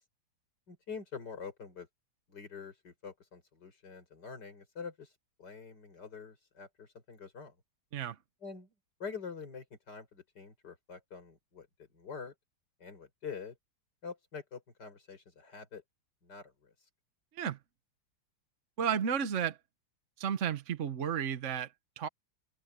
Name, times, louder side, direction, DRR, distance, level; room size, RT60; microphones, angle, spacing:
voice 1, 0.7-1.9 2.3-5.1 5.4-7.5 8.4-8.7 9.0-11.7 11.9-12.3 12.8-13.6 14.0-15.8 16.2-16.7, left 5 dB, 50° left, 5.3 m, -45 dB
voice 2, 18.8-19.6 20.2-22.1, right 8 dB, 50° right, 1.0 m, -33 dB
omnidirectional pair, 2.3 m